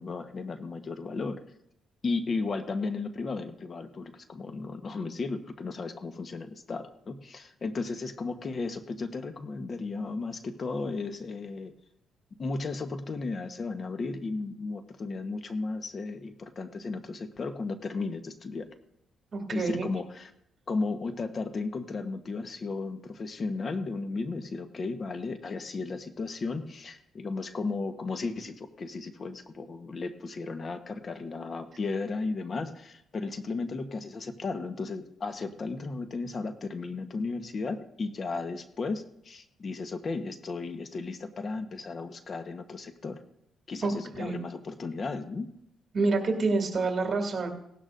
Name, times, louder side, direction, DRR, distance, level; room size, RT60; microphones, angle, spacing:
voice 1, 0.0-1.4 2.0-11.7 12.4-18.7 19.5-20.3 20.7-43.2 43.7-45.5, left 3 dB, 40° left, 7 dB, 1.1 m, -34 dB
voice 2, 19.3-19.9 43.8-44.4 45.9-47.5, right 3 dB, 45° right, 3 dB, 2.7 m, -28 dB
18.0 x 12.5 x 2.6 m, 0.77 s
cardioid pair, 90°, 0 cm